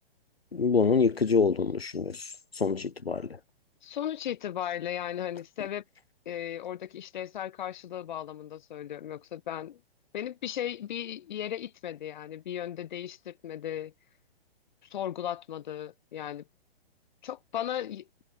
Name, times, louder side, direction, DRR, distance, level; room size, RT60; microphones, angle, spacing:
voice 1, 0.5-3.3, left 5 dB, 80° left, 0.9 m, -26 dB
voice 2, 3.8-5.8 6.2-9.8 10.1-13.9 14.9-16.4 17.2-18.1, left 10 dB, 50° left, 5.0 m, -36 dB
figure-of-eight pair, 120°, 30 cm